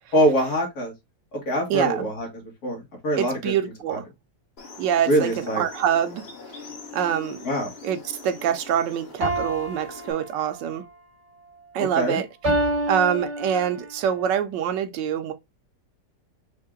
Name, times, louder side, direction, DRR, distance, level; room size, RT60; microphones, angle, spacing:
voice 1, 0.1-0.9 1.3-3.4 3.9-4.0 5.1-5.6 7.4-7.7 11.8-12.2, equal, 55° left, 2.2 m, -24 dB
voice 2, 1.7-2.1 3.1-4.0 4.8-6.3 6.9-7.4 7.8-10.8 11.7-12.3 12.9-15.3, right 9 dB, 90° right, 1.3 m, -25 dB
sound 1, 4.6-10.1, left 4 dB, 40° left, 1.1 m, -43 dB
sound 2, 9.2-10.8 12.4-13.9, right 1 dB, 40° right, 2.0 m, -27 dB
4.6 x 2.8 x 3.6 m
omnidirectional pair, 1.9 m